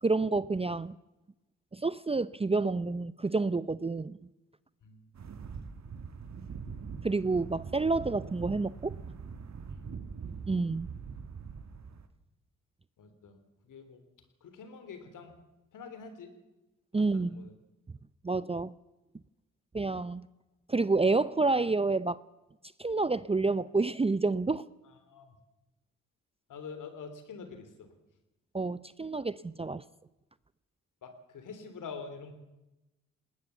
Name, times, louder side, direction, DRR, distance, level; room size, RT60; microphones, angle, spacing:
voice 1, 0.0-0.9 1.7-4.2 7.0-9.0 10.5-10.9 16.9-17.5 18.2-18.7 19.7-20.3 20.7-22.2 22.8-24.6 28.5-29.8, right 3 dB, 20° right, 0.7 m, -29 dB
voice 2, 4.8-5.1 9.7-9.9 13.0-14.0 14.4-15.4 15.7-16.3 16.9-17.5 24.8-25.4 26.5-27.9 31.0-32.3, left 5 dB, 75° left, 3.5 m, -46 dB
sound 1, 5.1-12.1, right 5 dB, 55° right, 2.0 m, -43 dB
19.5 x 19.0 x 7.1 m
supercardioid pair, 50°, 32 cm